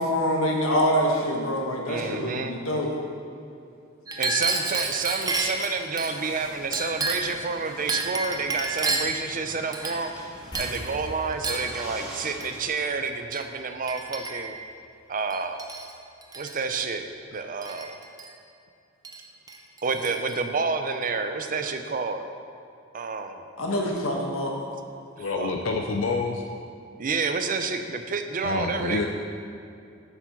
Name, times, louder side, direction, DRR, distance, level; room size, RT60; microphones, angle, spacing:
voice 1, 0.0-2.9 23.6-24.5, equal, 90° left, 0 dB, 1.5 m, -25 dB
voice 2, 1.9-2.6 4.2-10.1 10.6-14.6 15.1-15.6 16.3-18.0 19.8-22.2 22.9-23.4 25.4-25.5 27.0-29.1, right 4 dB, 40° right, 7 dB, 0.6 m, -29 dB
Chink clink, 4.1-6.1 6.7-7.4 7.9-9.2 9.7-10.2 10.5-10.8 11.4-11.7 12.4-12.6 13.3-13.5 13.9-14.6 15.3-15.9 16.2-16.6 17.6-18.3 19.0-19.2 19.5-20.4, right 3 dB, 20° right, 0.9 m, -30 dB
sound 1, 5.9-12.7, equal, 5° right, 1.9 m, -44 dB
sound 2, 10.5-13.3 13.6-13.8 16.7-16.8 17.1-17.2, left 1 dB, 20° left, 1.0 m, -41 dB
voice 3, 25.2-26.4 28.4-29.1, left 4 dB, 70° left, 2 dB, 0.6 m, -27 dB
7.8 x 7.1 x 6.0 m, 2.6 s
head